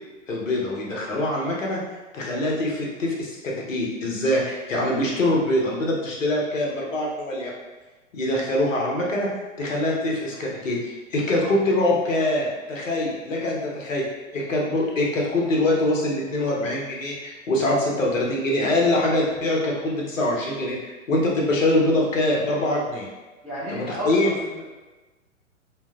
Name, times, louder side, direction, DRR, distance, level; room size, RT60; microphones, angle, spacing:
voice 1, 0.3-1.8 2.1-7.5 8.1-9.3 9.6-14.0 14.3-23.1 23.7-24.3, left 1 dB, 75° left, -2 dB, 0.8 m, -24 dB
voice 2, 23.4-24.6, equal, 5° left, -13 dB, 0.4 m, -31 dB
2.8 x 2.0 x 2.3 m, 1.2 s
figure-of-eight pair, 110°, 40 cm